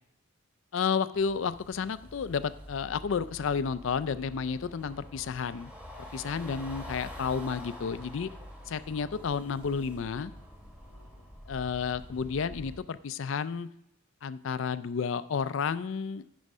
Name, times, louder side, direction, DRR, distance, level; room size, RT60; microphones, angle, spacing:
voice 1, 0.7-5.7 6.0-8.3 8.7-10.3 11.5-13.7 14.2-16.2, left 6 dB, 60° left, 15 dB, 0.4 m, -31 dB
sound 1, 1.1-12.8, equal, 5° right, 1.2 m, -46 dB
9.5 x 5.1 x 5.5 m, 0.86 s
head